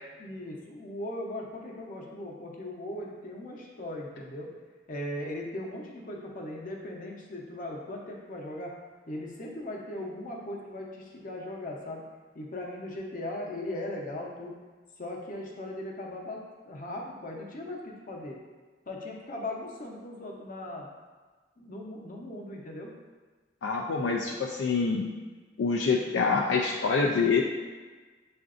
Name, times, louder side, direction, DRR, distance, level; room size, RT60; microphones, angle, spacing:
voice 1, 0.2-4.5 4.9-8.7 9.1-12.0 12.3-14.6 15.0-18.4 18.9-20.9 21.6-22.9, left 1 dB, 50° left, -1 dB, 0.7 m, -38 dB
voice 2, 23.6-25.0 25.6-27.4, left 4 dB, 80° left, -1 dB, 0.4 m, -26 dB
7.5 x 2.5 x 2.5 m, 1.4 s
head